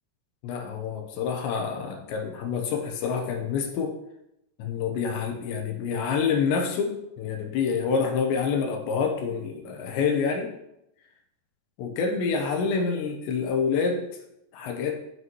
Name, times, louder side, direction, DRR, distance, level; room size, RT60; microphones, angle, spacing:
voice 1, 0.4-3.9 4.6-10.5 11.8-14.0 14.5-15.0, left 5 dB, 85° left, 3 dB, 3.3 m, -27 dB
9.6 x 8.4 x 3.1 m, 0.84 s
omnidirectional pair, 5.0 m